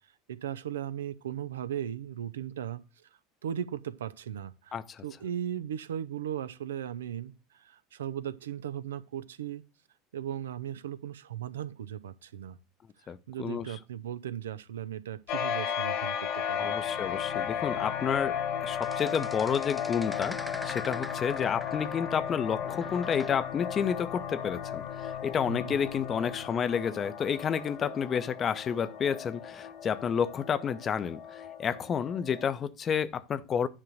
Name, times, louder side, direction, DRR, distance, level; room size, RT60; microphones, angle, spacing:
voice 1, 0.3-3.1 3.4-9.6 10.1-12.6 13.0-16.7 25.5-25.8, right 10 dB, 75° right, 0.6 m, -37 dB
voice 2, 4.7-5.0 13.1-13.7 16.6-18.4 18.6-20.4 20.6-33.7, left 7 dB, 35° left, 0.7 m, -30 dB
sound 1, 15.3-32.5, left 8 dB, 55° left, 1.5 m, -35 dB
sound 2, 16.5-27.9, left 11 dB, 75° left, 0.7 m, -45 dB
sound 3, 18.8-22.3 22.6-23.4 25.1-25.4, left 1 dB, ahead, 0.4 m, -44 dB
9.9 x 3.8 x 6.3 m
figure-of-eight pair, 70°, 0 cm